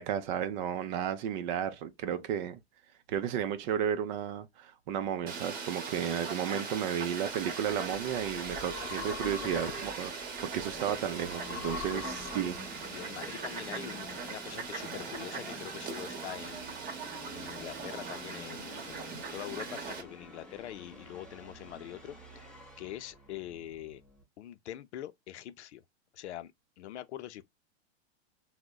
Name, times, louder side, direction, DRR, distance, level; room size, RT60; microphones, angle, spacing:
voice 1, 0.0-2.6 3.1-12.6, right 9 dB, 45° right, 0.5 m, -33 dB
Fowl, 5.3-20.0, right 5 dB, 30° right, 0.9 m, -40 dB
sound 1, 7.3-12.8, left 10 dB, 40° left, 0.8 m, -45 dB
voice 2, 9.4-9.7 10.1-10.2 11.9-12.1 12.9-16.8 17.3-24.0 24.4-25.8 26.1-27.4, left 12 dB, 80° left, 0.5 m, -44 dB
Musical instrument, 10.5-24.2, equal, 5° left, 0.7 m, -50 dB
3.5 x 2.1 x 2.2 m
hypercardioid pair, 125°, 33 cm